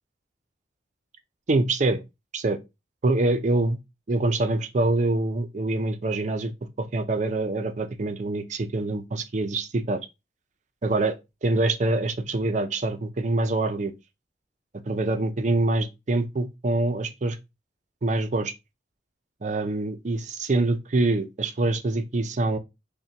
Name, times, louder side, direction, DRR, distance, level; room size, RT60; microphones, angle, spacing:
voice 1, 1.5-2.0 2.3-2.6 3.0-3.8 4.1-10.0 10.8-11.2 11.4-13.9 14.9-17.4 18.0-18.5 19.4-22.6, right 2 dB, 40° right, 0.5 m, -25 dB
5.5 x 2.2 x 2.8 m
head